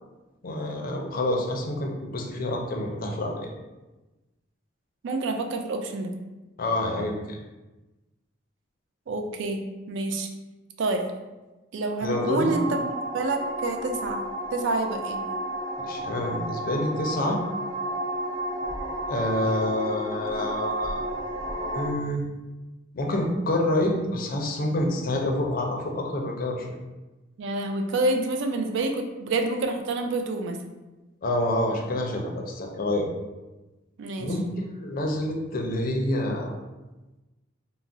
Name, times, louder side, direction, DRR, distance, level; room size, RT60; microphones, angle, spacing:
voice 1, 0.4-3.5 6.6-7.4 12.0-12.5 15.8-17.4 19.1-21.0 21.7-22.2 22.9-26.8 31.2-33.1 34.2-34.4 34.8-36.5, left 1 dB, 45° left, 1 dB, 0.4 m, -27 dB
voice 2, 5.0-6.1 9.1-10.3 10.8-11.0 11.7-12.9 13.1-14.2 14.5-15.2 27.4-30.6 34.0-34.3, right 2 dB, 65° right, 5 dB, 0.3 m, -28 dB
sound 1, 12.0-21.9, right 1 dB, 30° right, 1.1 m, -32 dB
2.4 x 2.0 x 3.7 m, 1.1 s
head